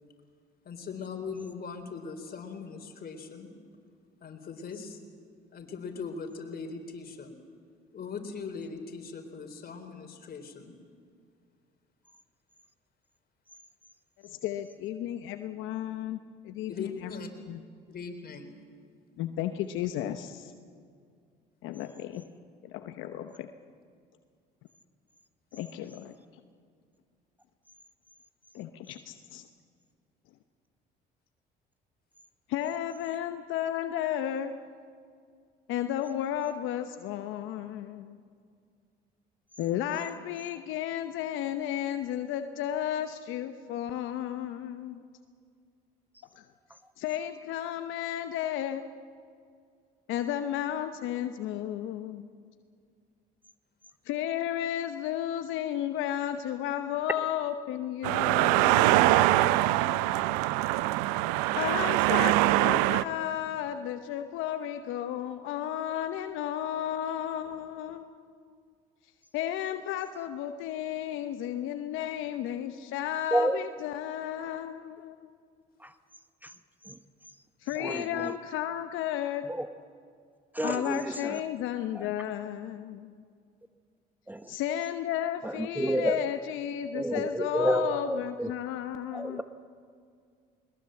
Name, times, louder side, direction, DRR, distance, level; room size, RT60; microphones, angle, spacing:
voice 1, 0.7-3.5 4.2-5.0 5.5-7.3 7.9-10.7 16.7-17.3 17.9-18.5, left 5 dB, 45° left, 6 dB, 3.7 m, -40 dB
voice 2, 14.2-16.2 16.4-17.6 19.2-20.5 21.6-22.2 22.6-23.5 25.5-26.1 28.5-29.5 32.5-34.6 35.7-38.2 39.6-45.0 46.4-46.5 47.0-48.9 50.1-52.3 54.0-60.2 61.5-68.4 69.3-75.3 77.6-79.5 80.6-83.1 84.5-89.4, left 11 dB, 70° left, 8 dB, 1.0 m, -33 dB
sound 1, 58.0-63.0, right 17 dB, 85° right, 0.6 m, -23 dB
voice 3, 77.8-78.3 79.5-79.7 80.5-81.4 81.9-82.1 84.3-84.5 85.4-86.2 86.9-88.5 89.1-89.4, right 1 dB, 10° right, 10 dB, 1.0 m, -30 dB
21.0 x 21.0 x 7.8 m, 2.1 s
supercardioid pair, 65°, 21 cm